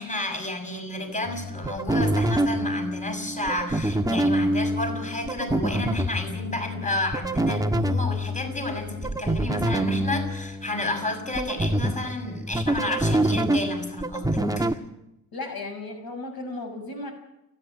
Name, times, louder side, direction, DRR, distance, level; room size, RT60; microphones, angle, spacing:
voice 1, 0.0-14.8, left 1 dB, 15° left, 5 dB, 6.5 m, -31 dB
sound 1, 1.3-14.7, right 1 dB, 10° right, 1.5 m, -26 dB
voice 2, 15.3-17.1, left 2 dB, 55° left, 4 dB, 6.0 m, -35 dB
29.5 x 10.0 x 9.3 m, 0.86 s
hypercardioid pair, 55°, 43 cm